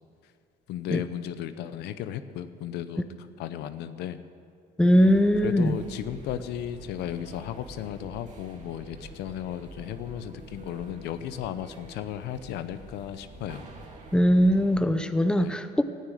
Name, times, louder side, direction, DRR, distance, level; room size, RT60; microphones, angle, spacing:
voice 1, 0.7-3.0 3.4-4.2 5.4-13.6 15.4-15.5, left 10 dB, 80° left, 11 dB, 0.8 m, -35 dB
voice 2, 4.8-5.8 14.1-15.8, equal, 5° left, 9 dB, 0.7 m, -21 dB
sound 1, 4.9-14.8, right 2 dB, 45° right, 2.3 m, -46 dB
13.0 x 9.5 x 9.3 m, 2.3 s
cardioid pair, 110°, 17 cm